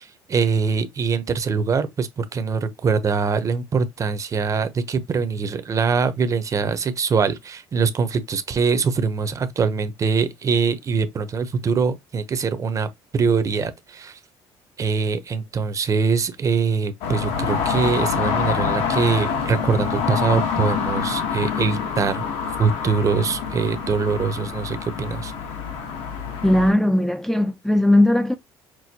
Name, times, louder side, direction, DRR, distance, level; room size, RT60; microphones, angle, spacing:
voice 1, 0.0-14.2 14.8-22.2 22.6-25.3, right 5 dB, 35° right, 0.7 m, -23 dB
sound 1, 17.0-26.7, left 6 dB, 80° left, 1.3 m, -26 dB
voice 2, 26.4-28.4, left 1 dB, 5° left, 0.4 m, -18 dB
6.0 x 2.1 x 2.8 m
cardioid pair, 100°, 10 cm